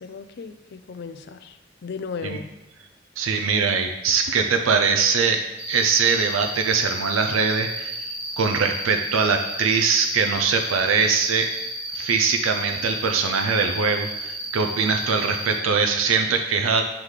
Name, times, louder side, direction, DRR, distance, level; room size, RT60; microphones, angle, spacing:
voice 1, 0.0-1.5 1.8-2.5, left 5 dB, 55° left, 10 dB, 0.4 m, -35 dB
voice 2, 3.2-5.4 5.7-8.1 8.4-11.5 11.9-16.8, right 5 dB, 85° right, 5 dB, 0.4 m, -22 dB
Cricket, 5.6-15.6, right 1 dB, 10° right, 1.4 m, -32 dB
7.9 x 3.7 x 3.2 m, 1.0 s
head